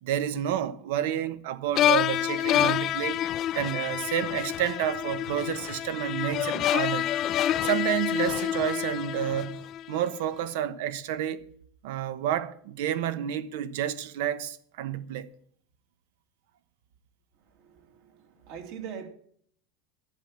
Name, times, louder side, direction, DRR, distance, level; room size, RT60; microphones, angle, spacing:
voice 1, 0.0-3.2 3.5-7.1 7.6-11.4 11.8-15.3, right 10 dB, 75° right, 1.0 m, -30 dB
sound 1, 1.8-10.0, left 11 dB, 35° left, 0.4 m, -27 dB
voice 2, 17.5-19.1, right 7 dB, 55° right, 2.3 m, -42 dB
11.0 x 8.7 x 7.5 m
supercardioid pair, 160°, 0 cm